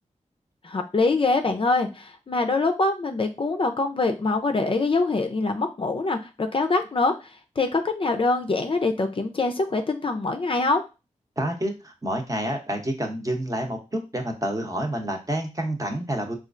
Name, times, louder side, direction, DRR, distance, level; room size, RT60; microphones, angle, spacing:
voice 1, 0.6-7.1 7.6-10.8, left 3 dB, 45° left, 5 dB, 0.5 m, -24 dB
voice 2, 11.4-16.4, right 1 dB, 25° right, 2 dB, 0.8 m, -28 dB
4.3 x 2.4 x 2.5 m, 0.28 s
cardioid pair, 60°, 13 cm